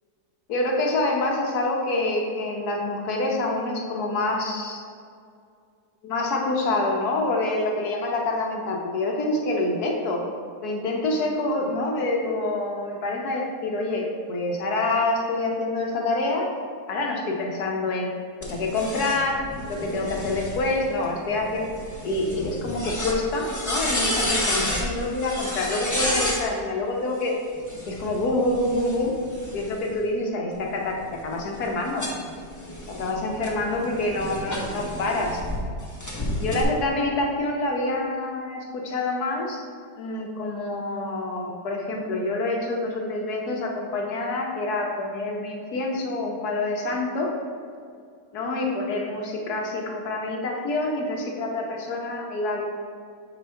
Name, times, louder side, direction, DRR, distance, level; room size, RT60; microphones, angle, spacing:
voice 1, 0.5-4.8 6.0-10.2 10.6-16.5 16.9-18.1 18.5-19.4 19.7-21.6 22.0-27.4 27.9-29.1 29.5-32.1 32.9-35.4 36.4-39.6 40.0-47.3 48.3-52.7, left 2 dB, 70° left, 0 dB, 1.4 m, -26 dB
sound 1, 18.4-26.4 27.6-29.9 30.5-35.6 36.0-36.6, left 1 dB, 15° left, 0.8 m, -31 dB
7.0 x 5.0 x 3.3 m, 2.3 s
omnidirectional pair, 1.7 m